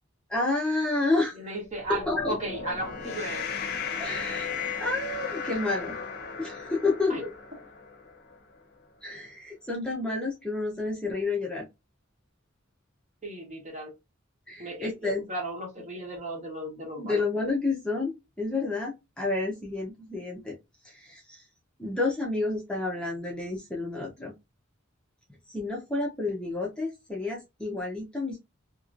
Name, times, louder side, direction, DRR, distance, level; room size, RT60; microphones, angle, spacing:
voice 1, 0.3-1.4 1.9-2.3 4.0-4.5 4.8-5.9 6.4-7.3 9.0-11.7 14.5-15.2 17.0-20.5 20.8-21.4 21.8-24.3 25.5-28.4, left 3 dB, 5° left, -2 dB, 0.7 m, -30 dB
voice 2, 1.3-3.4 7.1-7.2 13.2-13.9 14.6-17.2, right 1 dB, 40° right, 0 dB, 1.4 m, -35 dB
sound 1, 1.8-8.4, left 5 dB, 50° left, 0.6 m, -36 dB
2.9 x 2.9 x 2.5 m, 0.23 s
head